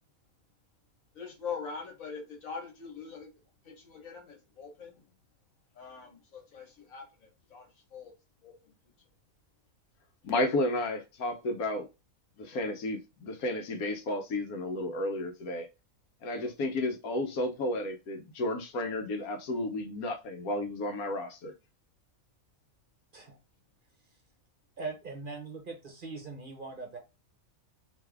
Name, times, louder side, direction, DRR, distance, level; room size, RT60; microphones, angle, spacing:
voice 1, 1.2-3.3 3.6-5.1 5.8-8.1 8.4-8.7, left 6 dB, 70° left, 1.7 m, -43 dB
voice 2, 10.2-11.9 12.4-15.7 16.2-21.5, left 1 dB, 85° left, 1.4 m, -32 dB
voice 3, 24.8-27.0, right 3 dB, 45° right, 0.9 m, -41 dB
3.4 x 3.1 x 3.5 m
omnidirectional pair, 1.5 m